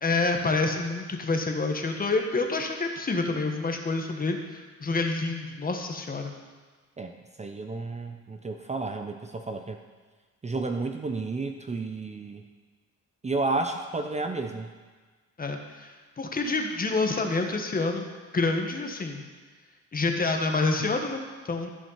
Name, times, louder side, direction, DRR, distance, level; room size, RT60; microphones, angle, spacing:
voice 1, 0.0-6.3 15.4-18.0 18.3-19.2 19.9-21.7, left 3 dB, 30° left, 4 dB, 1.3 m, -28 dB
voice 2, 7.0-9.8 10.4-12.4 13.2-14.7, right 3 dB, 20° right, 5 dB, 0.7 m, -32 dB
14.0 x 5.3 x 5.7 m, 1.4 s
cardioid pair, 90°, 30 cm